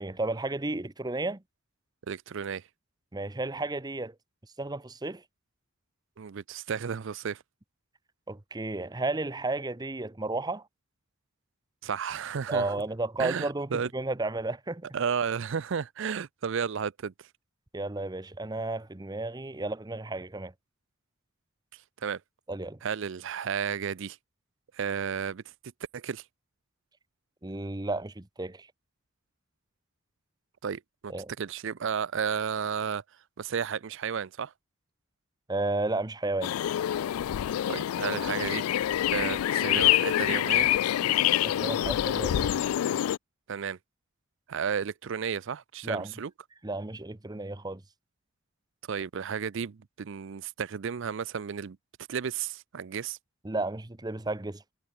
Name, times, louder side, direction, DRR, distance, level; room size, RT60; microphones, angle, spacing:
voice 1, 0.0-1.4 3.1-4.1 4.6-5.2 8.3-10.7 12.5-14.9 17.7-20.5 22.5-22.8 27.4-28.7 31.1-31.3 35.5-36.5 41.4-42.6 45.8-46.1 46.6-47.8 53.4-54.6, right 2 dB, 20° right, 0.8 m, -33 dB
voice 2, 2.1-2.7 6.2-7.4 11.8-12.7 13.2-13.9 14.9-17.3 21.7-22.2 22.8-24.2 24.7-25.4 25.9-26.2 30.6-31.1 31.4-33.0 33.4-34.5 37.7-38.6 39.1-40.7 43.5-43.8 44.5-46.3 48.9-51.8 52.1-53.2, right 7 dB, 60° right, 0.5 m, -33 dB
sound 1, 36.4-43.2, left 12 dB, 90° left, 0.3 m, -26 dB
head